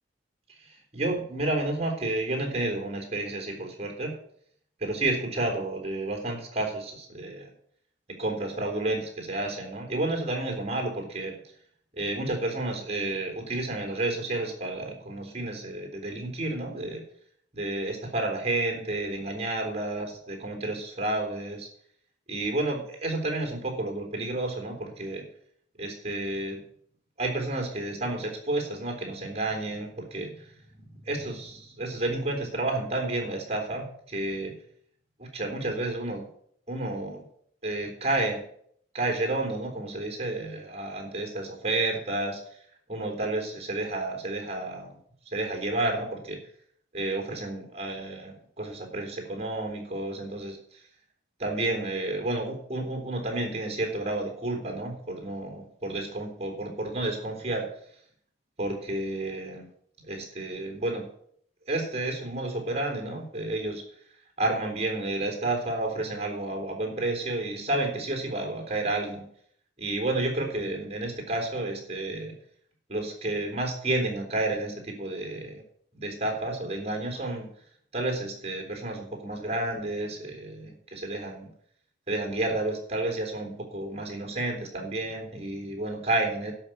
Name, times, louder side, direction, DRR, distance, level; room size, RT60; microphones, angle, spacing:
voice 1, 0.7-4.2 4.8-7.5 8.2-11.3 12.0-17.0 17.5-21.7 22.3-25.2 25.8-26.6 27.2-30.5 30.8-34.5 35.2-36.3 36.7-37.2 37.6-38.4 38.9-42.4 42.9-44.9 45.3-46.4 46.9-50.8 51.4-57.7 58.6-59.7 60.0-61.1 61.7-63.8 64.4-69.2 69.8-72.3 72.9-75.6 75.9-77.5 77.9-81.5 82.1-86.5, right 2 dB, 35° right, 3 dB, 3.6 m, -31 dB
12.0 x 5.9 x 9.1 m, 0.63 s
head